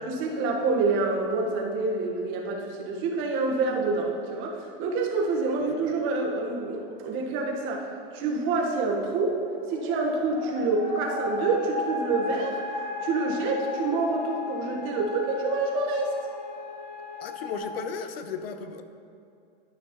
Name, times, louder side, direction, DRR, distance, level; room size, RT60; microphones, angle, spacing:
voice 1, 0.1-9.4 9.7-12.6 13.0-16.1, right 3 dB, 40° right, 0 dB, 1.3 m, -27 dB
sound 1, 8.7-17.6, left 3 dB, 35° left, 1.7 m, -35 dB
voice 2, 17.2-18.8, left 6 dB, 75° left, 9 dB, 0.8 m, -35 dB
12.0 x 5.8 x 3.0 m, 2.5 s
hypercardioid pair, 125°, 30 cm